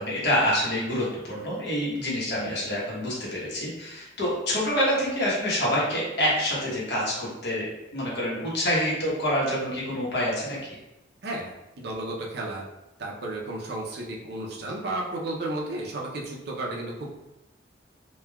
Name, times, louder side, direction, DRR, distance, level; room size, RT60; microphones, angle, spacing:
voice 1, 0.0-10.6, equal, 60° left, -6 dB, 0.9 m, -27 dB
voice 2, 11.2-12.7 13.0-17.1, right 2 dB, 55° right, -2 dB, 0.5 m, -33 dB
3.1 x 2.2 x 2.2 m, 0.97 s
head